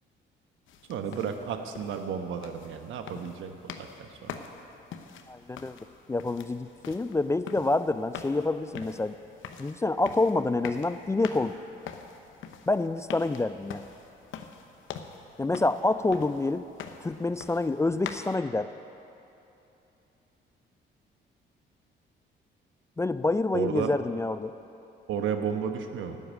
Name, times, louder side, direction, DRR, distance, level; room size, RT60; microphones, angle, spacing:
sound 1, 0.7-18.4, left 7 dB, 80° left, 0.8 m, -45 dB
voice 1, 0.9-4.4 23.5-23.9 25.1-26.2, right 7 dB, 80° right, 6 dB, 1.1 m, -33 dB
voice 2, 5.3-5.8 6.1-9.2 9.6-11.5 12.7-13.8 15.4-16.7 17.0-18.7 23.0-24.5, left 2 dB, 15° left, 13 dB, 0.3 m, -27 dB
11.5 x 7.9 x 9.2 m, 2.9 s
cardioid pair, 90°, 20 cm